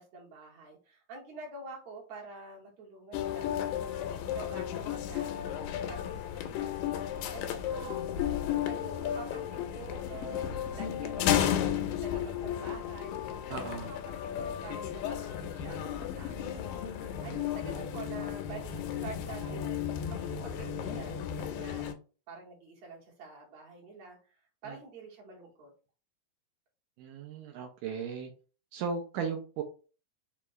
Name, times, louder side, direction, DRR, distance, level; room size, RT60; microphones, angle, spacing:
voice 1, 0.0-3.7 4.3-6.8 7.3-10.5 10.7-19.7 20.2-21.9 22.3-24.2 24.6-25.7, right 3 dB, 60° right, -2 dB, 2.4 m, -47 dB
sound 1, 3.1-21.9, left 10 dB, 85° left, 2.2 m, -34 dB
voice 2, 13.5-13.9 24.7-24.8 27.0-28.3 28.7-29.6, right 6 dB, 80° right, 3 dB, 2.1 m, -36 dB
5.5 x 2.4 x 3.0 m, 0.36 s
omnidirectional pair, 3.9 m